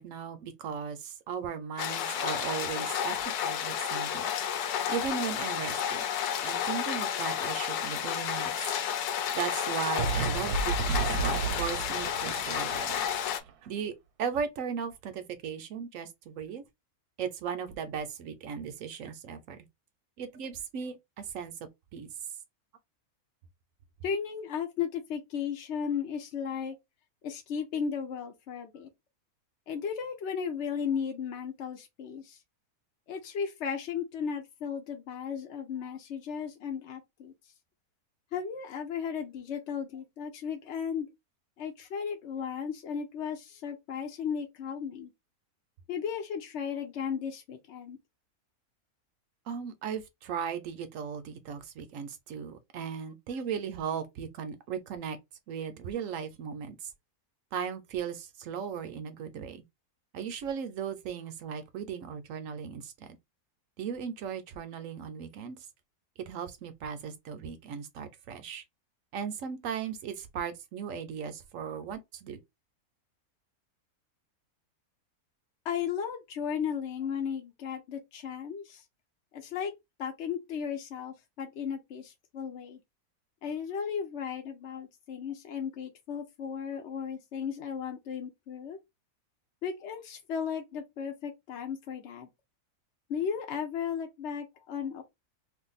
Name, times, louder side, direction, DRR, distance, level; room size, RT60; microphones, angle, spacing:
voice 1, 0.0-6.0 6.4-8.7 9.3-13.0 13.6-16.6 17.2-19.7 20.2-21.5 21.9-22.1 49.5-55.2 55.5-56.9 57.5-59.6 60.1-63.2 63.8-65.6 66.2-68.6 69.1-72.4, right 7 dB, 70° right, 0.9 m, -37 dB
sound 1, 1.8-13.4, left 9 dB, 80° left, 1.1 m, -31 dB
sound 2, 10.0-13.5, right 5 dB, 85° right, 1.1 m, -32 dB
voice 2, 24.0-26.8 27.2-28.9 29.7-32.4 33.1-37.3 38.3-41.1 41.6-45.1 45.9-48.0 75.6-78.8 79.3-79.7 80.0-82.8 83.4-88.8 89.6-92.3 93.1-95.0, left 7 dB, 60° left, 0.8 m, -35 dB
2.6 x 2.5 x 3.8 m
omnidirectional pair, 1.6 m